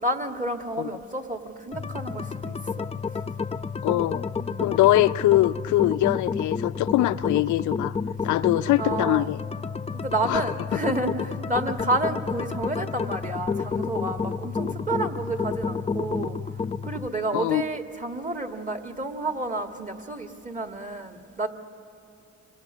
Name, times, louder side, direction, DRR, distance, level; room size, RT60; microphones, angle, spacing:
voice 1, 0.0-2.9 4.4-4.6 8.7-9.3 9.9-16.4 16.8-21.5, right 2 dB, 25° right, 5 dB, 2.0 m, -30 dB
sound 1, 1.7-17.1, left 5 dB, 20° left, 0.6 m, -30 dB
voice 2, 3.8-4.3 4.6-7.9 8.2-9.4 10.2-10.4 10.7-10.8 17.3-17.6, left 15 dB, 75° left, 12 dB, 0.5 m, -22 dB
27.0 x 26.0 x 6.3 m, 2.7 s
cardioid pair, 90°, 30 cm